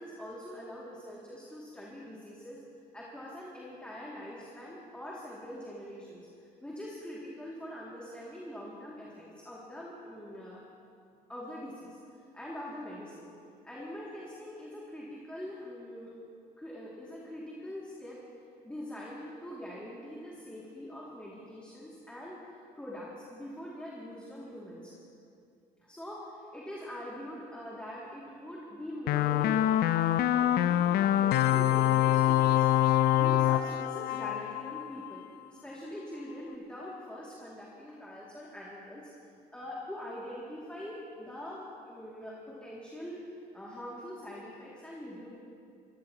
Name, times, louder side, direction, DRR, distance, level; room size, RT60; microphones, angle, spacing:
voice 1, 0.0-2.6 2.9-10.6 11.3-12.0 12.3-13.3 13.6-16.1 16.6-18.2 18.6-22.4 22.8-24.9 25.8-32.7 33.1-35.2 35.6-39.1 39.5-43.2 43.5-45.3, equal, 5° left, -5 dB, 2.4 m, -43 dB
sound 1, 29.1-35.2, left 13 dB, 65° left, 0.5 m, -25 dB
24.0 x 16.0 x 2.9 m, 2.4 s
cardioid pair, 110°, 17 cm